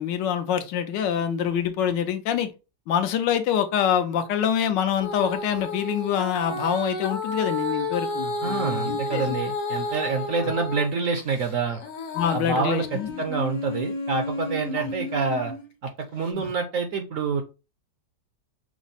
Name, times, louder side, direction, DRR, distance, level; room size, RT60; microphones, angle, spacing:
voice 1, 0.0-2.5 2.9-9.4 10.4-10.5 12.1-13.3 14.8-14.9 16.4-16.5, left 8 dB, 80° left, 1.3 m, -26 dB
Female singing, 5.0-10.9 11.4-15.7 16.3-16.4, left 2 dB, 55° left, 1.1 m, -31 dB
voice 2, 8.4-11.8 12.3-15.5 15.8-17.4, right 4 dB, 65° right, 0.8 m, -27 dB
6.0 x 2.0 x 3.9 m
omnidirectional pair, 1.9 m